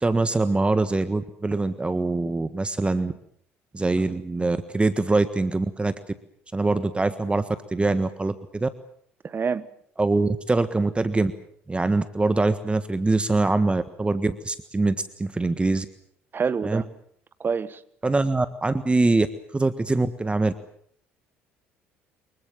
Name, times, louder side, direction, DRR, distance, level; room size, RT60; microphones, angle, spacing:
voice 1, 0.0-3.1 3.7-5.9 6.5-8.7 10.0-11.3 11.7-15.8 16.6-16.8 18.0-19.3 19.5-20.5, right 3 dB, 15° right, 1.5 m, -23 dB
voice 2, 9.2-9.7 16.3-16.9 17.4-17.8, right 6 dB, 35° right, 1.3 m, -26 dB
25.0 x 22.0 x 7.4 m
hypercardioid pair, 55°, 6 cm